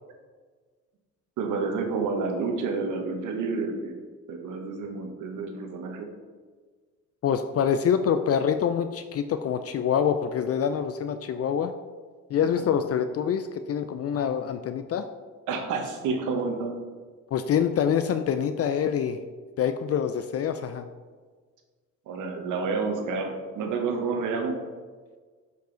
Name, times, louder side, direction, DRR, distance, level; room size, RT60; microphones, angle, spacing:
voice 1, 1.4-4.0 4.3-6.1 12.4-12.7 15.5-16.8 22.1-24.6, right 4 dB, 85° right, 3 dB, 1.1 m, -29 dB
voice 2, 7.2-11.7 12.3-15.1 17.3-19.2 19.6-20.9, left 8 dB, 50° left, 9 dB, 0.4 m, -26 dB
6.7 x 5.3 x 3.9 m, 1.5 s
cardioid pair, 90°, 30 cm